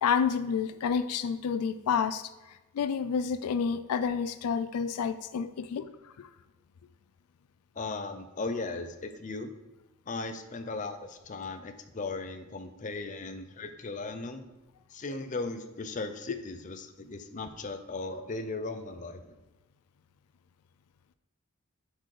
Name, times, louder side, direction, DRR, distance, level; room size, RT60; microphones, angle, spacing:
voice 1, 0.0-6.3 16.3-16.4, left 6 dB, 85° left, 12 dB, 0.4 m, -30 dB
voice 2, 7.8-9.5 10.1-14.5 14.9-19.2, left 3 dB, 35° left, 8 dB, 0.5 m, -37 dB
7.3 x 4.6 x 4.8 m, 1.1 s
head